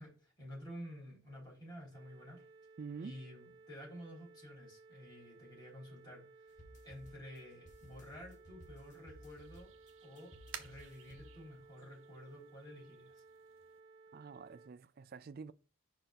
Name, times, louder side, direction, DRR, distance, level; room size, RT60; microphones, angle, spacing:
voice 1, 0.0-2.5 3.0-9.7 10.0-13.2, equal, 20° left, 3.6 m, -51 dB
sound 1, 1.9-14.7, right 4 dB, 20° right, 1.4 m, -60 dB
voice 2, 2.8-3.2 14.1-15.5, right 5 dB, 45° right, 0.4 m, -47 dB
sound 2, 6.5-11.8, equal, 35° left, 1.1 m, -58 dB
sound 3, 8.6-13.8, right 8 dB, 70° right, 0.9 m, -56 dB
5.2 x 4.4 x 5.8 m
head